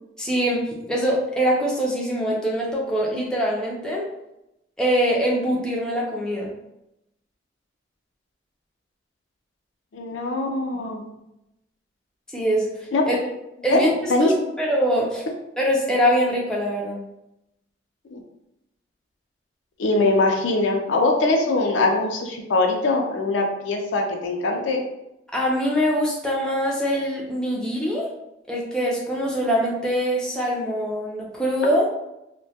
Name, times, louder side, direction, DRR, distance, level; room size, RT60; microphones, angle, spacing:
voice 1, 0.2-0.6 0.9-4.0 4.8-6.5 12.3-12.7 13.1-13.2 13.6-15.3 15.6-17.0 25.3-28.1 28.5-31.9, equal, 5° left, -4 dB, 0.4 m, -23 dB
voice 2, 9.9-11.0 12.9-13.2 13.7-13.8 14.1-14.3 18.1-18.2 19.8-24.8, left 2 dB, 85° left, 2 dB, 0.4 m, -22 dB
2.1 x 2.1 x 2.7 m, 0.88 s
head